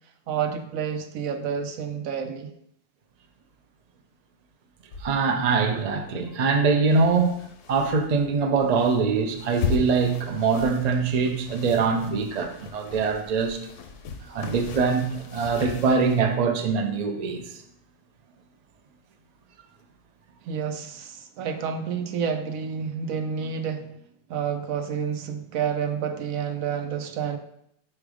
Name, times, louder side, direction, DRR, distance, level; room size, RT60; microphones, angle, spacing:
voice 1, 0.3-2.5 20.4-23.9 24.3-27.4, right 7 dB, 75° right, 1.0 m, -29 dB
sound 1, 4.9-16.2, left 5 dB, 65° left, 0.9 m, -37 dB
voice 2, 5.0-7.3 7.7-13.6 14.3-17.5, right 5 dB, 50° right, 0.5 m, -23 dB
4.9 x 4.4 x 4.9 m
omnidirectional pair, 1.5 m